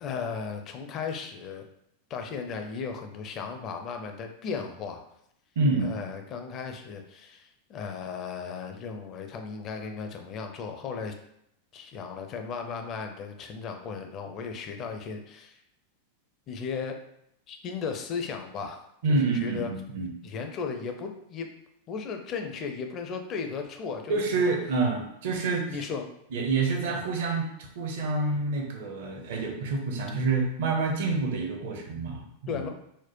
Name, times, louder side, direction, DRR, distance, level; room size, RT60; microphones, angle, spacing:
voice 1, 0.0-1.7 2.1-5.0 5.7-11.1 11.7-15.6 16.5-17.0 17.5-18.8 19.3-19.7 20.2-21.5 21.9-24.5 25.7-26.1 32.5-32.7, left 5 dB, 35° left, 4 dB, 0.5 m, -36 dB
voice 2, 5.6-6.0 19.0-20.1 24.1-25.9 26.3-27.5 27.8-32.6, right 3 dB, 55° right, 2 dB, 0.6 m, -27 dB
4.2 x 2.0 x 3.0 m, 0.75 s
figure-of-eight pair, 90°, 0 cm